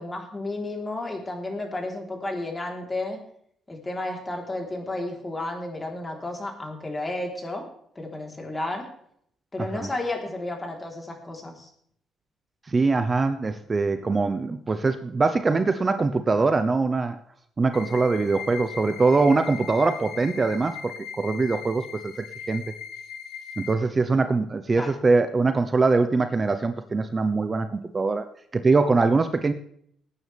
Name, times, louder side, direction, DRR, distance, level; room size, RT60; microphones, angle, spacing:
voice 1, 0.0-3.2 3.7-7.7 8.0-8.9 9.5-11.7 24.7-24.9, left 2 dB, 20° left, 1 dB, 3.8 m, -32 dB
voice 2, 12.7-17.2 17.6-22.1 22.5-22.6 23.6-28.3 28.5-29.5, right 3 dB, 30° right, 9 dB, 0.9 m, -23 dB
sound 1, 17.7-23.7, left 8 dB, 85° left, 1.4 m, -39 dB
19.5 x 9.6 x 3.5 m, 0.66 s
cardioid pair, 90°, 0 cm